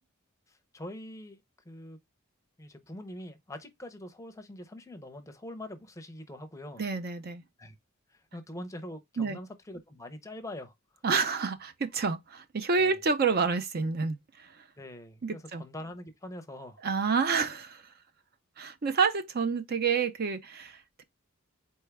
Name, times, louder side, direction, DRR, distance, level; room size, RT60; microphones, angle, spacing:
voice 1, 0.5-1.4 1.6-2.0 2.6-6.8 7.6-7.8 8.1-11.0 12.8-13.0 14.8-16.8, left 1 dB, 15° left, 0.6 m, -44 dB
voice 2, 6.8-7.4 9.2-9.4 11.0-14.5 15.2-15.6 16.8-17.8 18.6-21.0, right 5 dB, 45° right, 0.5 m, -29 dB
4.3 x 3.4 x 3.3 m
head